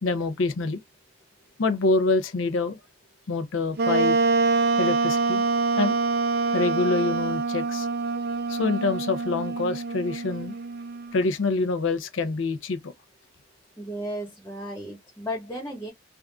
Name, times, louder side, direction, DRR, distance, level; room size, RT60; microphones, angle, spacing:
voice 1, 0.0-0.8 1.6-2.8 3.3-4.2 4.8-5.4 5.8-6.0 6.5-7.9 8.5-10.6 11.1-12.9, left 3 dB, 85° left, 0.6 m, -26 dB
Wind instrument woodwind instrument, 3.8-11.2, right 4 dB, 55° right, 0.5 m, -25 dB
voice 2, 13.8-15.9, equal, 10° left, 1.3 m, -34 dB
3.5 x 2.4 x 2.3 m
head